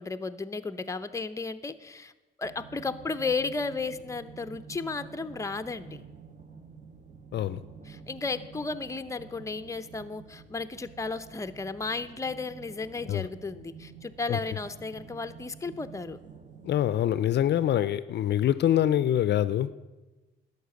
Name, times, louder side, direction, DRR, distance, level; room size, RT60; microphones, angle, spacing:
voice 1, 0.0-2.1 2.4-6.0 7.9-16.2, left 4 dB, 15° left, 10 dB, 0.6 m, -34 dB
sound 1, 2.4-17.1, right 6 dB, 35° right, 1.2 m, -49 dB
voice 2, 16.6-19.7, left 11 dB, 60° left, 16 dB, 0.5 m, -25 dB
11.5 x 6.6 x 8.2 m, 1.2 s
cardioid pair, 90°, 20 cm